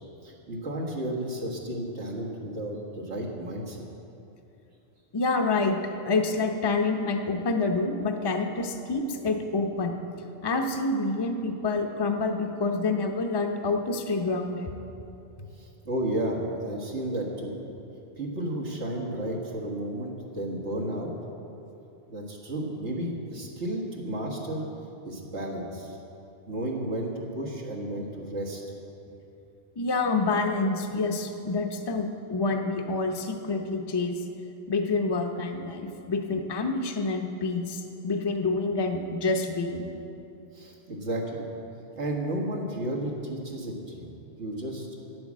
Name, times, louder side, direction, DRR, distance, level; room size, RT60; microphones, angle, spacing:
voice 1, 0.2-3.8 15.6-17.6 18.2-21.1 22.1-24.7 25.0-26.0 26.5-27.1 27.4-28.6 40.5-41.5 42.0-44.1 44.4-44.9, right 1 dB, 90° right, -2 dB, 1.9 m, -32 dB
voice 2, 5.1-5.8 6.1-9.9 10.4-14.7 29.8-34.2 34.7-39.9, left 3 dB, 25° left, 4 dB, 0.6 m, -27 dB
9.6 x 8.8 x 7.4 m, 2.8 s
omnidirectional pair, 1.1 m